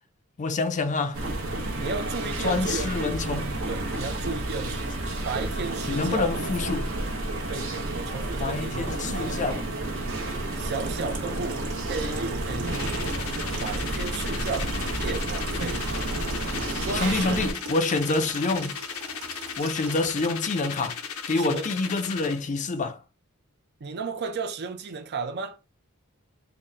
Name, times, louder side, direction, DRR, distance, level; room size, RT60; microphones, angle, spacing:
voice 1, 0.4-1.2 2.4-3.5 5.9-6.9 8.4-9.6 16.9-18.8 19.6-21.0 21.3-23.0, left 3 dB, 35° left, 0.4 m, -27 dB
sound 1, 1.1-17.5, right 2 dB, 65° right, 0.9 m, -30 dB
voice 2, 1.8-2.9 3.7-4.9 5.2-6.3 7.5-8.9 10.6-12.7 13.6-15.8 16.8-17.5 21.3-21.7 23.8-25.6, right 4 dB, 50° right, 0.5 m, -34 dB
Water tap faucet / Sink (filling or washing), 10.5-20.3, right 3 dB, 90° right, 1.2 m, -42 dB
sound 2, 12.7-22.4, left 7 dB, 90° left, 0.7 m, -36 dB
3.9 x 2.1 x 3.9 m
head